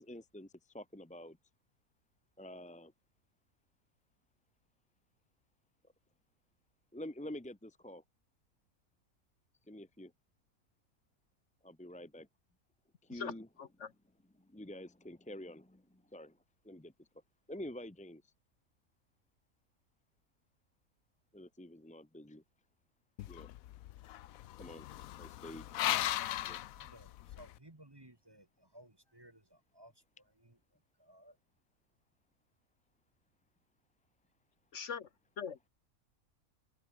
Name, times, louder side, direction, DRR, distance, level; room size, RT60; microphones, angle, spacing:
voice 1, 0.0-1.4 2.4-2.9 6.9-8.0 9.7-10.1 11.6-12.3 13.0-13.5 14.4-16.4 16.6-17.1 17.5-18.3 21.3-22.4 23.3-23.5 24.6-24.9 25.2-25.7 26.4-26.6, left 1 dB, 5° left, 0.6 m, -48 dB
voice 2, 13.6-13.9 34.7-35.1 35.4-35.7, left 6 dB, 55° left, 1.2 m, -41 dB
sound 1, 23.2-27.5, left 14 dB, 75° left, 1.0 m, -38 dB
voice 3, 26.7-29.9 30.4-30.6 31.0-31.4, right 1 dB, 15° right, 1.5 m, -59 dB
omnidirectional pair, 1.6 m